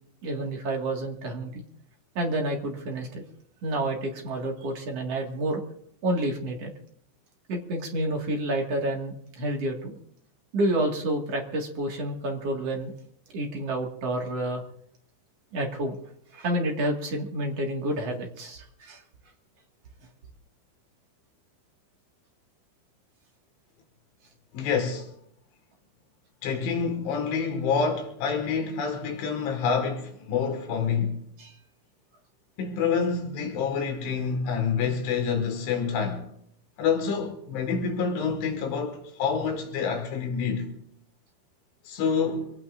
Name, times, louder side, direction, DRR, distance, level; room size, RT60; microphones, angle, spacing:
voice 1, 0.2-1.6 2.2-3.2 3.6-5.6 6.0-6.7 7.5-10.0 10.5-12.9 13.3-14.6 15.5-15.9 16.3-19.0 31.4-31.5, right 1 dB, 50° right, 2.0 m, -29 dB
voice 2, 24.5-25.1 26.4-31.2 32.6-36.2 36.8-40.7 41.9-42.5, left 6 dB, 80° left, 4.2 m, -27 dB
25.5 x 18.0 x 2.5 m
omnidirectional pair, 5.5 m